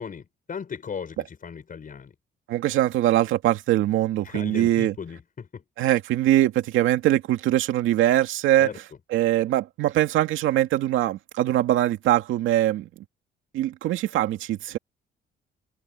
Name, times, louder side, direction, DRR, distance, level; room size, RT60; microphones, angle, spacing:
voice 1, 0.0-2.1 4.2-5.6 8.6-8.8, left 6 dB, 45° left, 5.4 m, -37 dB
voice 2, 2.5-4.9 5.8-8.7 9.1-12.9 13.5-14.8, right 13 dB, 90° right, 2.3 m, -22 dB
cardioid pair, 90°, 20 cm